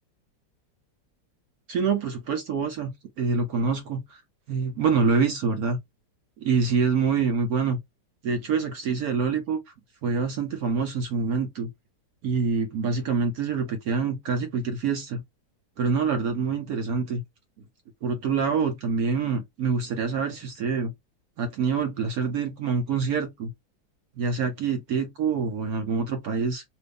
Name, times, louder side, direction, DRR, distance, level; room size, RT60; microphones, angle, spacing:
voice 1, 1.7-2.9 3.2-4.2 4.5-5.8 6.4-7.8 8.2-9.6 10.0-11.7 12.2-15.2 15.8-17.2 18.0-20.9 21.4-23.5 24.2-26.6, right 5 dB, 65° right, 1.0 m, -26 dB
3.0 x 2.6 x 3.3 m
omnidirectional pair, 1.9 m